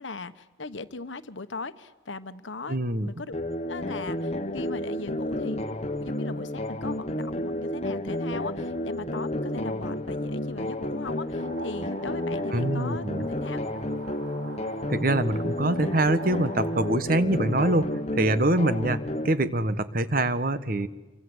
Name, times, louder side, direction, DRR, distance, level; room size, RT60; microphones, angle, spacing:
voice 1, 0.0-3.3 3.7-5.7 6.0-13.7, left 3 dB, 85° left, 12 dB, 1.2 m, -38 dB
voice 2, 2.7-3.1 12.5-13.3 14.9-20.9, right 1 dB, 50° right, 12 dB, 1.2 m, -25 dB
sound 1, 3.3-19.3, left 1 dB, 35° left, 1.2 m, -31 dB
sound 2, 11.0-16.9, right 1 dB, 80° right, 4.8 m, -44 dB
27.0 x 24.5 x 7.9 m, 1.1 s
head